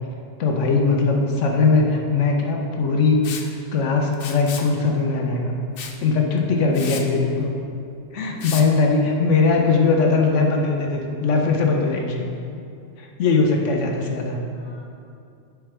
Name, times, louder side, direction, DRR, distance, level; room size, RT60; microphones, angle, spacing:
voice 1, 0.4-5.5 6.0-7.5 8.1-12.2 13.0-14.4, left 4 dB, 85° left, 1 dB, 1.1 m, -20 dB
Liquid, 3.2-3.5 4.1-4.7 5.8-6.0 6.4-6.5 6.7-7.0 8.4-8.7, left 7 dB, 60° left, 0.7 m, -33 dB
voice 2, 7.0-7.3 9.2-9.6 14.5-14.9, left 2 dB, 25° left, -3 dB, 0.9 m, -44 dB
9.5 x 4.6 x 3.3 m, 2.5 s
omnidirectional pair, 1.2 m